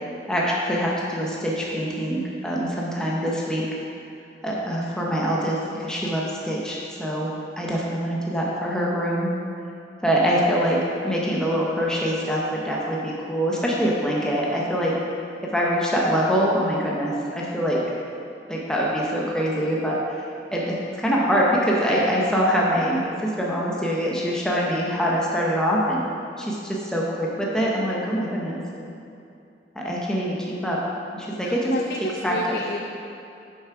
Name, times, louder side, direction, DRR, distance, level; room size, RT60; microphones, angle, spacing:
voice 1, 0.3-3.6 4.4-9.3 10.0-10.8 11.0-14.9 15.5-17.8 18.5-26.1 26.4-28.8 29.7-30.8 31.1-31.7 32.2-32.5, equal, 5° left, -5 dB, 0.8 m, -24 dB
voice 2, 31.4-32.0 32.3-32.8, left 2 dB, 55° left, 1 dB, 0.5 m, -31 dB
7.2 x 5.8 x 4.7 m, 2.6 s
head